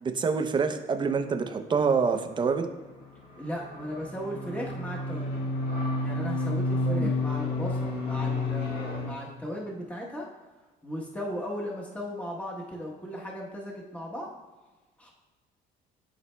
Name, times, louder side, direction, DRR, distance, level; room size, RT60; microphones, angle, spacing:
voice 1, 0.0-2.7 6.9-7.1, right 5 dB, 25° right, 7 dB, 0.6 m, -26 dB
sound 1, 2.1-9.1, left 2 dB, 65° left, 1.7 m, -31 dB
voice 2, 3.4-5.4 6.0-10.3 10.8-14.3 15.0-15.1, equal, 10° left, -3 dB, 1.0 m, -36 dB
11.0 x 4.1 x 2.2 m, 1.2 s
cardioid pair, 110°, 17 cm